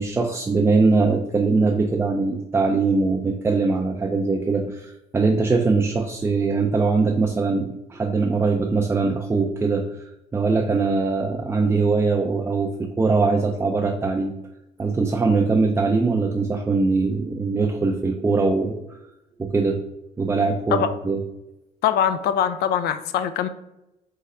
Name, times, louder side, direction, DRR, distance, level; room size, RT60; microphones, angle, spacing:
voice 1, 0.0-14.3 14.8-18.8 19.4-19.8 20.2-21.2, right 3 dB, 15° right, 2 dB, 0.4 m, -22 dB
voice 2, 21.8-23.5, left 9 dB, 70° left, 10 dB, 0.4 m, -22 dB
3.7 x 3.3 x 4.1 m, 0.90 s
cardioid pair, 110°, 17 cm